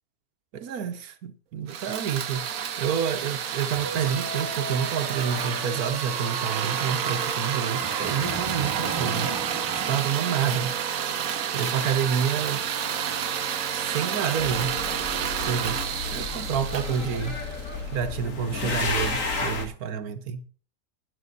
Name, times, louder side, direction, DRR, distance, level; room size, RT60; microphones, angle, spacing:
voice 1, 0.5-2.5 2.8-9.3 9.9-10.7 11.5-12.6 13.7-14.8 15.4-15.8 16.1-17.4 17.9-20.4, right 7 dB, 85° right, 1.5 m, -28 dB
sound 1, 1.7-17.9, right 8 dB, 70° right, 1.3 m, -30 dB
sound 2, 3.8-10.0, right 4 dB, 35° right, 0.4 m, -36 dB
sound 3, 14.4-19.7, left 4 dB, 65° left, 2.2 m, -32 dB
20.5 x 6.9 x 4.0 m
omnidirectional pair, 1.5 m